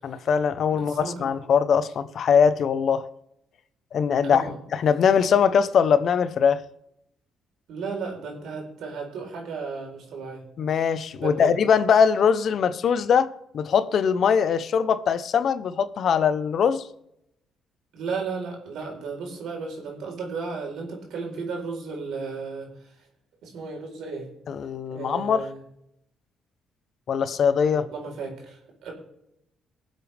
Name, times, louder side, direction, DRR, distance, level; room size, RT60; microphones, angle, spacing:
voice 1, 0.0-3.1 3.9-4.4 4.7-6.6 10.6-16.9 24.5-25.5 27.1-27.9, left 7 dB, 60° left, 0.8 m, -21 dB
voice 2, 0.8-1.3 4.2-4.6 7.7-10.5 11.2-11.5 17.9-22.9 23.4-24.3 24.9-25.6 27.7-28.9, right 4 dB, 75° right, 4.2 m, -34 dB
20.5 x 7.6 x 3.5 m
cardioid pair, 95°, 0 cm